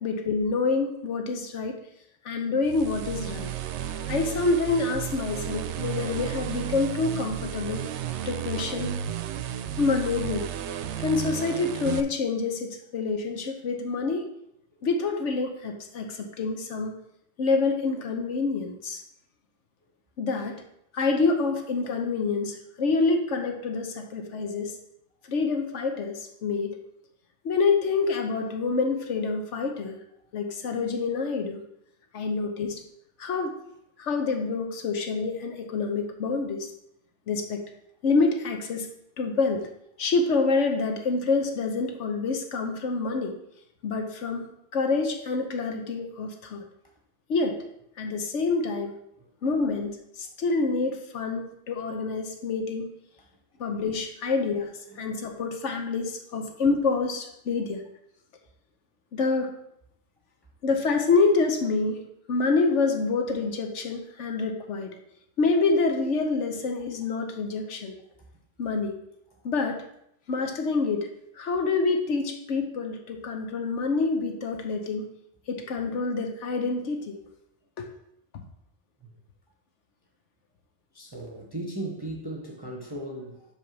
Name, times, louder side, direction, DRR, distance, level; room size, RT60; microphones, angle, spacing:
voice 1, 0.0-1.7 2.2-3.5 4.1-7.8 8.3-9.0 9.8-10.5 11.0-14.3 14.8-16.9 17.4-19.0 20.2-20.6 20.9-24.8 25.3-26.7 27.4-30.0 30.3-31.6 32.1-32.8 33.2-33.5 34.0-36.7 37.3-37.6 38.0-38.9 39.2-39.7 40.0-43.3 43.8-46.6 47.3-47.6 48.0-48.9 49.4-49.9 50.2-52.9 53.6-57.8 59.1-59.5 60.6-62.0 62.3-64.9 65.4-67.9 68.6-68.9 69.4-69.8 70.3-71.1 71.4-75.1 75.5-77.2 77.8-77.9, left 4 dB, 80° left, 4 dB, 1.2 m, -27 dB
sound 1, 2.6-12.0, right 10 dB, 75° right, 0.8 m, -33 dB
voice 2, 80.9-83.5, right 1 dB, 20° right, -1 dB, 0.8 m, -37 dB
7.9 x 3.4 x 5.9 m, 0.78 s
omnidirectional pair, 1.2 m